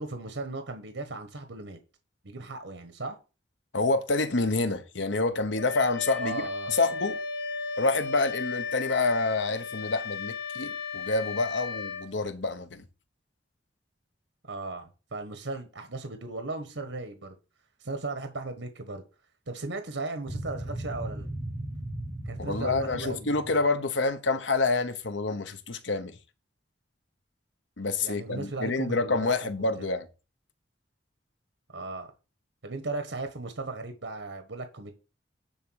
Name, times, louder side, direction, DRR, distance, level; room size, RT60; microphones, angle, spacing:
voice 1, 0.0-1.8 2.2-3.2 6.1-6.7 14.4-17.3 17.8-19.0 19.5-21.3 22.2-23.3 28.0-29.3 29.8-29.9 31.7-32.1 32.6-34.9, right 3 dB, 85° right, 1.3 m, -36 dB
voice 2, 3.7-6.4 6.7-7.2 7.8-12.8 22.4-26.2 27.8-30.1, left 3 dB, 80° left, 1.0 m, -27 dB
Wind instrument woodwind instrument, 5.6-12.1, left 4 dB, 65° left, 1.4 m, -35 dB
sound 1, 20.3-23.6, right 1 dB, 15° right, 1.6 m, -36 dB
10.0 x 3.7 x 6.4 m
head